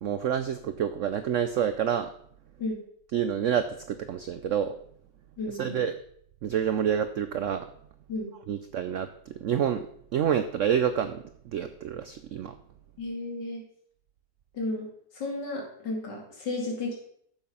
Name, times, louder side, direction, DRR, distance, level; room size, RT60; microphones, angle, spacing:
voice 1, 0.0-2.1 3.1-4.7 5.5-5.9 6.4-7.7 8.5-9.9 10.1-12.6, right 8 dB, 85° right, 11 dB, 0.6 m, -28 dB
voice 2, 5.4-5.8 8.1-8.3 13.0-13.6 14.5-14.9 15.1-17.0, left 2 dB, 70° left, 0 dB, 3.0 m, -33 dB
9.3 x 7.2 x 5.4 m, 0.67 s
omnidirectional pair, 1.9 m